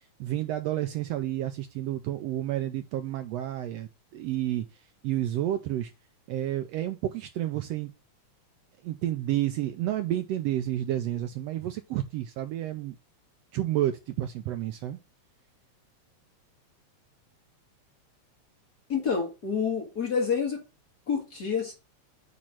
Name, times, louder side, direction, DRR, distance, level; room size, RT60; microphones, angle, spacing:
voice 1, 0.2-4.7 5.0-5.9 6.3-7.9 8.8-12.9 13.5-15.0, right 13 dB, 80° right, 1.5 m, -30 dB
voice 2, 18.9-20.6 21.1-21.7, left 6 dB, 40° left, 1.7 m, -28 dB
8.6 x 3.2 x 5.9 m
omnidirectional pair, 3.3 m